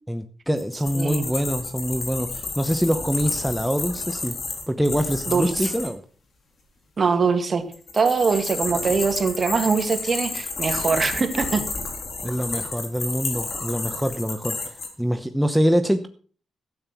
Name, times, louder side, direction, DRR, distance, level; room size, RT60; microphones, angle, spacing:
voice 1, 0.1-4.3 4.7-6.0 12.2-16.1, equal, ahead, 7 dB, 0.9 m, -24 dB
sound 1, 0.6-5.9 7.7-14.9, left 3 dB, 55° left, 4.0 m, -31 dB
voice 2, 5.3-5.7 7.0-7.6 7.9-11.6, right 5 dB, 45° right, 6 dB, 2.2 m, -22 dB
13.0 x 8.8 x 6.0 m, 0.43 s
cardioid pair, 90°, 0 cm